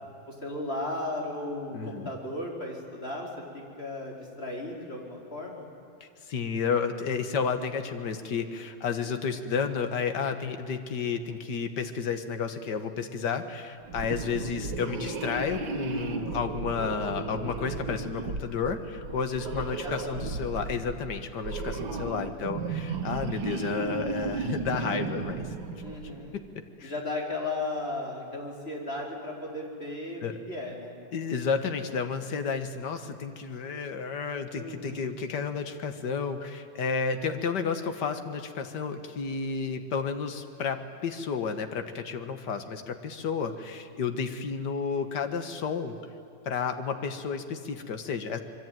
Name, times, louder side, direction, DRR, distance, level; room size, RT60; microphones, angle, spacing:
voice 1, 0.3-3.3 3.5-5.7 19.5-20.2 25.8-26.4 26.8-31.0 34.5-35.1, left 2 dB, 30° left, -1 dB, 4.8 m, -35 dB
voice 2, 1.7-2.1 6.0-25.5 26.8-26.9 30.2-30.4 31.1-46.0 46.5-48.4, left 5 dB, 60° left, 8 dB, 2.1 m, -31 dB
sound 1, 13.9-26.3, right 4 dB, 85° right, 2.4 m, -35 dB
25.5 x 23.0 x 9.2 m, 2.7 s
omnidirectional pair, 2.1 m